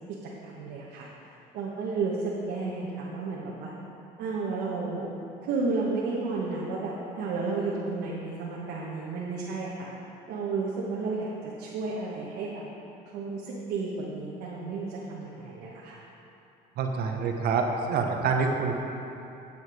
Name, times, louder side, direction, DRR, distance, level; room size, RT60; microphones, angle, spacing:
voice 1, 0.4-1.1 1.5-3.7 4.2-5.1 5.4-9.9 10.3-11.3 11.6-12.6 13.1-16.0, right 4 dB, 90° right, -5 dB, 1.2 m, -32 dB
voice 2, 16.8-18.7, right 5 dB, 65° right, 3 dB, 1.0 m, -26 dB
9.6 x 7.1 x 4.9 m, 2.9 s
cardioid pair, 110°, 17 cm